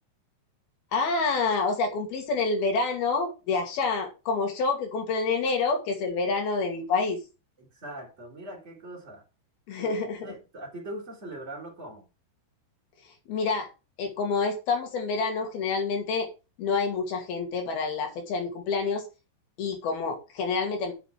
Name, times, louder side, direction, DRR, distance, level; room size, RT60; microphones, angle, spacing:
voice 1, 0.9-7.2 9.7-10.2 13.3-13.7 14.0-16.3 16.6-19.1 19.6-20.9, left 4 dB, 60° left, 4.1 m, -27 dB
voice 2, 7.6-9.2 9.7-10.0 10.2-12.1, right 1 dB, 15° right, 3.7 m, -41 dB
9.4 x 7.8 x 4.6 m
omnidirectional pair, 5.0 m